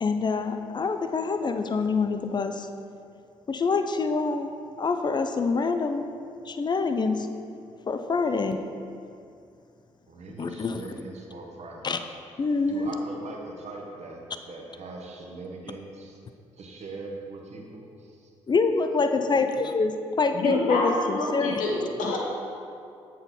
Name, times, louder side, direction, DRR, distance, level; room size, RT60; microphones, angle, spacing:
voice 1, 0.0-2.7 3.5-4.5 4.8-6.1 6.5-7.3 7.9-8.6 10.4-10.8 11.8-12.0 12.4-12.9 18.5-21.6 22.0-22.1, left 4 dB, 30° left, 8 dB, 0.5 m, -26 dB
voice 2, 10.1-11.9 12.7-16.2 16.6-18.3, right 3 dB, 45° right, 1 dB, 1.0 m, -41 dB
voice 3, 20.3-22.2, left 2 dB, 60° left, -2 dB, 1.2 m, -27 dB
7.8 x 4.5 x 3.8 m, 2.5 s
figure-of-eight pair, 40°, 15 cm